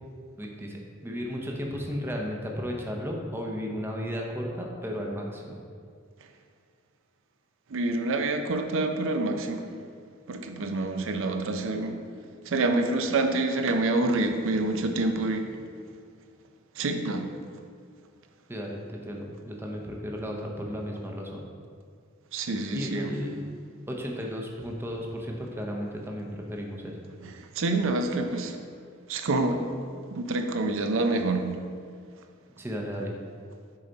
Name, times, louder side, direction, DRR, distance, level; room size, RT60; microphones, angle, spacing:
voice 1, 0.4-5.6 18.5-21.4 22.7-23.4 23.9-27.0 32.6-33.1, equal, 10° right, 0 dB, 0.6 m, -34 dB
voice 2, 7.7-9.6 10.3-12.0 12.5-15.5 16.8-17.3 22.3-23.1 27.2-28.6 29.1-29.7 30.1-31.6, right 2 dB, 65° right, 5 dB, 0.5 m, -27 dB
6.7 x 4.1 x 3.9 m, 2.1 s
head